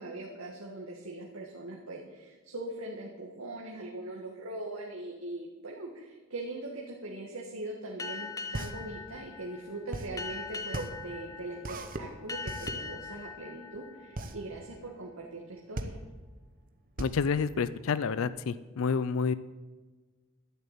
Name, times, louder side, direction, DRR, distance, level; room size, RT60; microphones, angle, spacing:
voice 1, 0.0-16.0, right 2 dB, 85° right, -1 dB, 1.6 m, -41 dB
Boat Water vehicle, 8.0-15.1, left 4 dB, 15° left, 0.7 m, -42 dB
sound 1, 8.1-18.4, right 2 dB, 40° right, 0.9 m, -39 dB
voice 2, 17.0-19.3, left 5 dB, 75° left, 16 dB, 0.4 m, -29 dB
11.5 x 6.7 x 9.1 m, 1.3 s
head